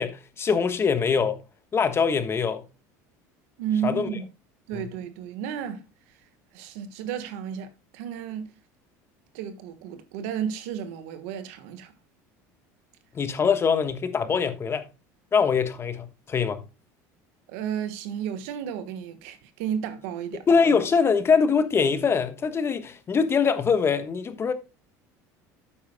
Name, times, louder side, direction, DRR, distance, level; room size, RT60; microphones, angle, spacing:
voice 1, 0.0-1.4 1.7-2.7 3.8-4.1 4.7-4.8 13.1-14.8 15.3-16.6 20.5-24.5, left 5 dB, 30° left, 1.2 m, -23 dB
voice 2, 3.6-4.3 4.7-6.2 6.5-8.5 9.3-11.9 17.5-20.5, right 8 dB, 75° right, 1.3 m, -33 dB
11.5 x 8.6 x 2.2 m
supercardioid pair, 95°, 8 cm